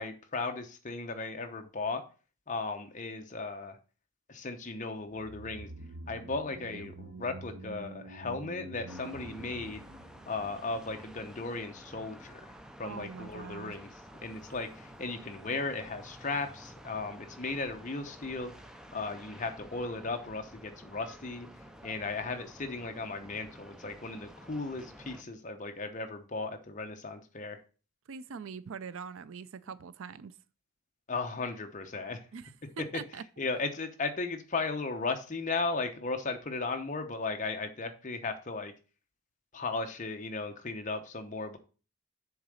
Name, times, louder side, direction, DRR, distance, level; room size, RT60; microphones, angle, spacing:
voice 1, 0.0-2.0 2.5-3.8 4.3-5.7 6.1-9.8 10.3-12.5 12.8-13.9 14.2-18.5 18.9-21.5 21.8-27.6 31.1-32.2 33.4-38.7 39.5-41.6, left 3 dB, 35° left, 0.9 m, -36 dB
sound 1, 5.1-11.5 11.7-11.8, right 1 dB, 80° right, 0.9 m, -47 dB
sound 2, 8.9-25.2, equal, 5° right, 0.4 m, -51 dB
voice 2, 12.8-13.7 28.1-30.3 32.3-33.2, right 6 dB, 65° right, 0.4 m, -43 dB
7.0 x 3.9 x 6.3 m
head